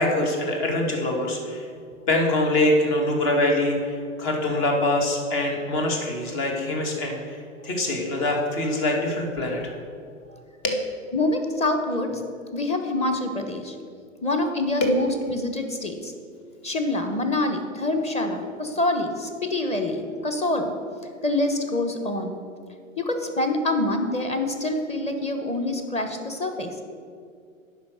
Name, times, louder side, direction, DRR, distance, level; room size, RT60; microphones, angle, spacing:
voice 1, 0.0-1.7 2.1-7.4 7.6-9.7 10.6-10.8 14.8-14.9, left 1 dB, 50° left, 1 dB, 2.2 m, -24 dB
voice 2, 11.1-12.2 12.5-13.8 14.2-16.1 16.6-20.7 21.2-22.4 23.0-26.8, left 2 dB, 15° left, 6 dB, 1.0 m, -26 dB
9.4 x 5.6 x 6.5 m, 2.3 s
hypercardioid pair, 105°, 40 cm